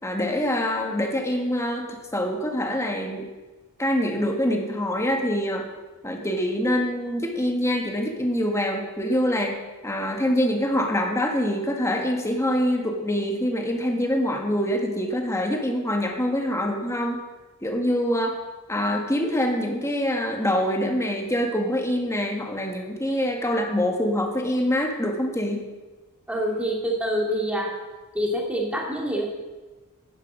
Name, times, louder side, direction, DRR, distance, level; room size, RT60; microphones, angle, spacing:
voice 1, 0.0-3.3 3.8-5.6 6.0-17.2 17.6-18.4 18.7-25.6, equal, 15° left, 2 dB, 1.7 m, -25 dB
voice 2, 26.3-27.7 28.1-29.2, equal, 5° right, -1 dB, 2.4 m, -26 dB
10.5 x 9.8 x 6.2 m, 1.2 s
head